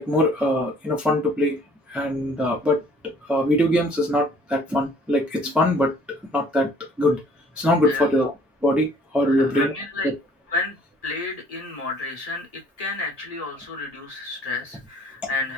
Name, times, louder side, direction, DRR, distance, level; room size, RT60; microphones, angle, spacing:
voice 1, 0.0-1.6 1.9-6.7 7.0-7.2 7.6-8.3 8.6-9.7 10.0-10.2, left 1 dB, ahead, 0.3 m, -22 dB
voice 2, 9.2-10.1 10.5-10.8 11.0-15.5, left 3 dB, 40° left, 1.1 m, -30 dB
3.0 x 2.1 x 2.3 m
omnidirectional pair, 1.0 m